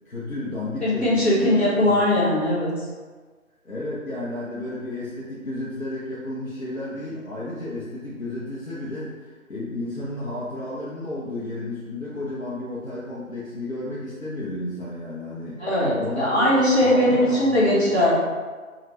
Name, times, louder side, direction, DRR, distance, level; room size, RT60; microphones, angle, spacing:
voice 1, 0.1-1.6 1.8-2.0 3.6-15.7 15.9-17.9, left 2 dB, 65° left, -8 dB, 0.8 m, -32 dB
voice 2, 0.8-2.9 15.6-18.1, left 1 dB, 50° left, -8 dB, 1.2 m, -20 dB
3.1 x 2.4 x 3.1 m, 1.4 s
figure-of-eight pair, 175°, 43 cm